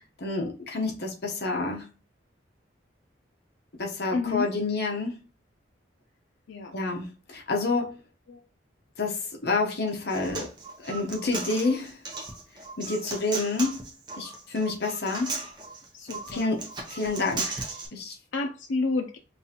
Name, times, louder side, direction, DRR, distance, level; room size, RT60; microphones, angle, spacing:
voice 1, 0.2-1.9 3.8-5.1 6.7-8.0 9.0-10.5 10.8-12.0 12.8-13.8 14.2-15.4 16.3-18.1, left 3 dB, 60° left, 0.9 m, -29 dB
voice 2, 4.1-4.5 6.5-6.7 8.3-8.4 15.9-16.5 18.3-19.2, left 3 dB, 85° left, 0.4 m, -30 dB
Human voice, 9.9-17.9, right 3 dB, 25° right, 0.8 m, -36 dB
5.3 x 2.5 x 2.8 m
head